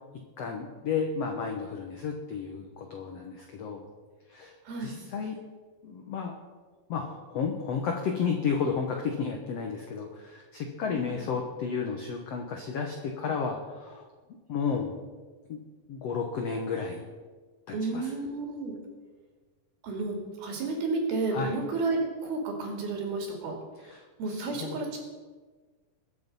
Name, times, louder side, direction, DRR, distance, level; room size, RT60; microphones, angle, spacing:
voice 1, 0.4-3.8 4.3-5.4 5.8-6.4 6.9-14.1 14.5-15.0 15.5-15.6 15.9-17.1 17.7-18.1 21.3-21.5 23.8-24.8, left 5 dB, 80° left, 3 dB, 1.4 m, -32 dB
voice 2, 4.6-5.0 10.9-11.3 17.7-18.8 19.8-23.6 24.2-25.0, right 3 dB, 70° right, 1 dB, 4.4 m, -31 dB
21.5 x 7.6 x 5.4 m, 1.4 s
omnidirectional pair, 4.6 m